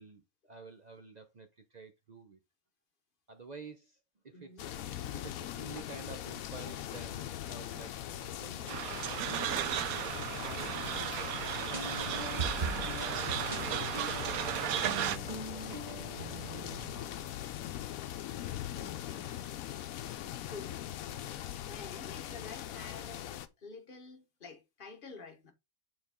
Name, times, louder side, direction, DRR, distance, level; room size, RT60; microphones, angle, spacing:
voice 1, 0.0-2.4 3.3-4.0 4.2-4.7 5.1-10.1 10.4-11.0 11.7-17.3 21.1-21.3, right 4 dB, 50° right, 0.5 m, -51 dB
voice 2, 4.3-4.7 6.0-6.1 10.4-10.9 20.3-20.9 21.7-23.2 23.6-25.5, left 4 dB, 40° left, 1.1 m, -50 dB
sound 1, 4.6-23.5, left 12 dB, 80° left, 1.0 m, -41 dB
sound 2, 8.7-15.2, right 11 dB, 80° right, 1.0 m, -35 dB
sound 3, 11.6-16.9, right 3 dB, 35° right, 0.9 m, -41 dB
6.8 x 4.2 x 3.6 m
omnidirectional pair, 1.5 m